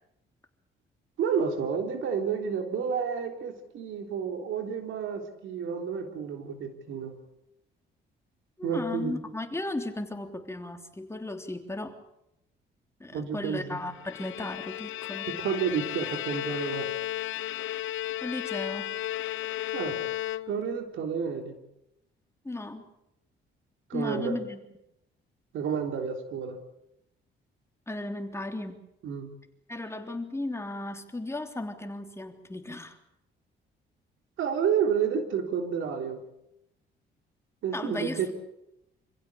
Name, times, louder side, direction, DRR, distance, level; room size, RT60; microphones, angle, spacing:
voice 1, 1.2-7.1 8.6-9.2 13.1-13.8 15.3-16.9 19.7-20.0 20.5-21.6 23.9-24.4 25.5-26.6 29.0-29.3 34.4-36.2 37.6-38.3, right 7 dB, 80° right, 5 dB, 3.7 m, -30 dB
voice 2, 8.6-12.0 13.0-15.3 18.2-18.9 22.4-22.8 23.9-24.6 27.9-28.8 29.7-33.0 37.7-38.3, left 2 dB, 15° left, 5 dB, 3.3 m, -35 dB
Bowed string instrument, 13.9-20.9, left 14 dB, 80° left, 0.9 m, -34 dB
26.5 x 16.0 x 8.6 m, 0.84 s
cardioid pair, 90°, 20 cm